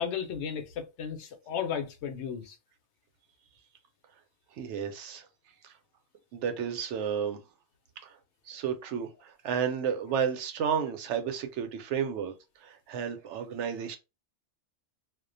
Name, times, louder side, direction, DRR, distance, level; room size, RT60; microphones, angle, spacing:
voice 1, 0.0-2.6, left 7 dB, 80° left, 0.9 m, -34 dB
voice 2, 4.5-5.3 5.6-5.7 6.3-7.4 8.0-8.2 8.5-12.3 12.6-14.0, right 7 dB, 90° right, 0.9 m, -32 dB
2.3 x 2.1 x 2.5 m
omnidirectional pair, 1.2 m